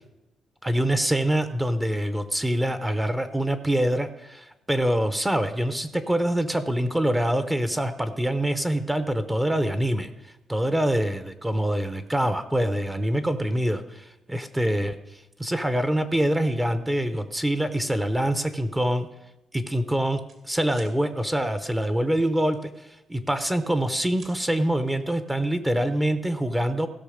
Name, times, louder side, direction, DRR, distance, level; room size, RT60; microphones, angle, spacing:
voice 1, 0.6-19.1 19.5-26.9, right 1 dB, 10° right, 10 dB, 0.7 m, -25 dB
sound 1, 19.1-19.2 19.5-20.4 20.7-21.0 22.5-23.3 23.7-24.4, right 3 dB, 55° right, 2.3 m, -52 dB
16.0 x 6.3 x 5.1 m, 0.94 s
cardioid pair, 135°, 0 cm